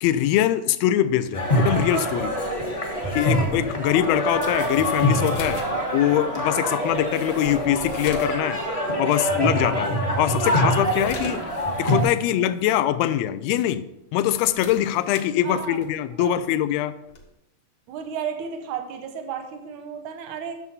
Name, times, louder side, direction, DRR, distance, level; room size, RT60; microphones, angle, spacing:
voice 1, 0.0-2.4 3.1-5.7 5.9-8.6 9.0-11.4 11.8-16.9, left 12 dB, 80° left, 13 dB, 1.6 m, -23 dB
sound 1, 1.3-12.0, equal, 35° left, 0.5 m, -25 dB
sound 2, 3.0-8.4 8.8-8.9 9.4-9.5 10.0-12.2 12.6-12.8 14.0-16.0 17.1-17.3, left 3 dB, 55° left, 1.6 m, -41 dB
voice 2, 12.2-12.5 15.4-15.8 16.2-16.4 17.9-20.5, right 7 dB, 85° right, 6 dB, 2.4 m, -33 dB
10.5 x 6.8 x 4.3 m, 0.89 s
omnidirectional pair, 3.4 m